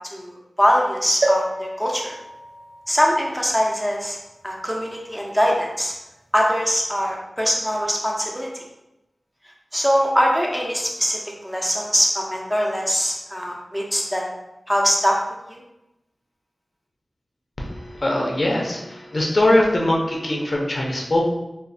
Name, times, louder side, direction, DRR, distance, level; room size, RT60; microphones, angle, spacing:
voice 1, 0.1-2.1 2.9-4.2 4.4-5.9 6.3-8.5 9.7-14.2 14.7-15.2 15.5-15.6, equal, ahead, -1 dB, 0.5 m, -22 dB
sound 1, 1.2-4.9 5.5-5.6 5.8-5.9, right 1 dB, 90° right, 0.4 m, -29 dB
voice 2, 17.6-21.3, left 1 dB, 45° left, -1 dB, 0.5 m, -21 dB
3.0 x 2.0 x 2.5 m, 0.93 s
wide cardioid pair, 60°, 0 cm